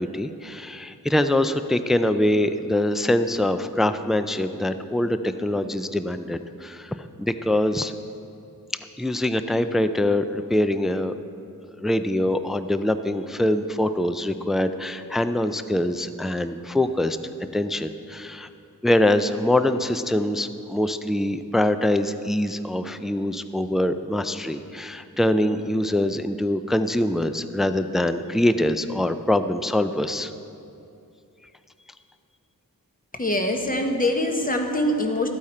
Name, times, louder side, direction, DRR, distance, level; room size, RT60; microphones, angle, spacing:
voice 1, 0.0-7.9 9.0-11.1 11.8-17.2 17.5-18.5 18.8-30.3, left 1 dB, ahead, 11 dB, 0.3 m, -24 dB
voice 2, 33.2-35.3, left 1 dB, 20° left, 3 dB, 1.1 m, -23 dB
13.5 x 8.6 x 4.3 m, 2.7 s
wide cardioid pair, 90°, 37 cm